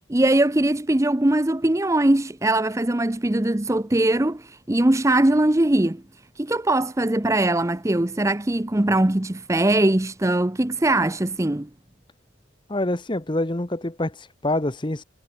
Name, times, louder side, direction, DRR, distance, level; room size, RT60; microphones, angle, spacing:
voice 1, 0.1-6.0 6.4-11.7, right 1 dB, 15° right, 0.6 m, -21 dB
voice 2, 12.7-15.0, left 1 dB, 25° left, 1.0 m, -26 dB
head